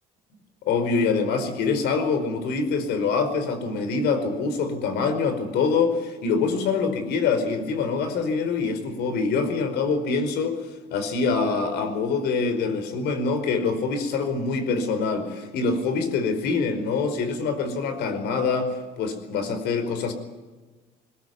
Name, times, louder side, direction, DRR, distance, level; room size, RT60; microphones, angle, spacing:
voice 1, 0.6-10.6 10.9-20.1, left 4 dB, 80° left, 9 dB, 4.9 m, -25 dB
21.5 x 21.5 x 9.6 m, 1.3 s
cardioid pair, 110°, 17 cm